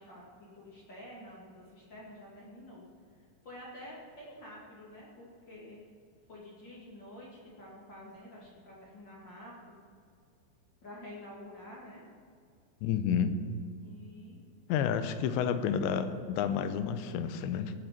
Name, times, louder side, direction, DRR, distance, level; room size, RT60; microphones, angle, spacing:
voice 1, 0.0-2.8 3.1-5.8 6.3-9.7 10.8-12.0 13.8-14.4 15.0-15.6, left 1 dB, 35° left, -5 dB, 2.0 m, -49 dB
voice 2, 12.8-13.3 14.7-17.7, left 8 dB, 80° left, 10 dB, 2.9 m, -30 dB
19.0 x 6.7 x 5.9 m, 2.3 s
omnidirectional pair, 5.2 m